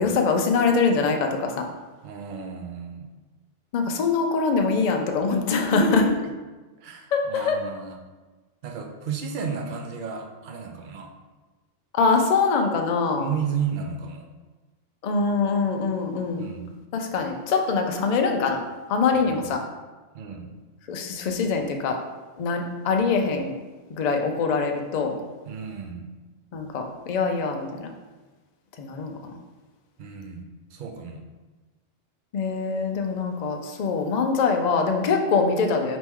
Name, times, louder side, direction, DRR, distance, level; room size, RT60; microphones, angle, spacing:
voice 1, 0.0-1.7 3.7-6.0 7.1-7.6 11.9-13.3 15.0-16.5 16.9-18.6 18.9-19.6 20.9-22.0 22.4-23.5 23.9-25.1 26.5-27.9 28.8-29.3 32.3-36.0, left 4 dB, 60° left, 3 dB, 0.4 m, -23 dB
voice 2, 2.0-3.1 5.5-6.2 6.8-8.0 8.6-11.1 13.2-14.3 16.4-16.7 19.1-19.5 20.1-20.5 25.4-26.1 30.0-31.2, right 5 dB, 55° right, 4 dB, 0.6 m, -32 dB
4.3 x 3.0 x 3.5 m, 1.2 s
omnidirectional pair, 1.2 m